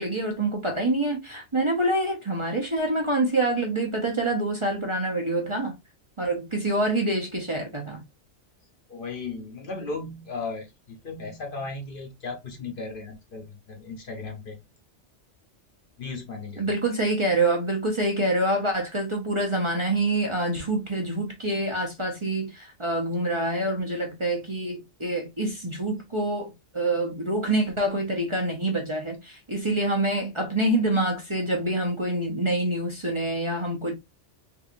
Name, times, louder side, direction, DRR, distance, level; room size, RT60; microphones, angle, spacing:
voice 1, 0.0-5.7 6.2-8.0 16.6-33.9, right 1 dB, 30° right, 0.8 m, -26 dB
voice 2, 8.9-14.6 16.0-16.7, left 3 dB, 50° left, 0.9 m, -36 dB
3.6 x 3.2 x 2.5 m
omnidirectional pair, 1.2 m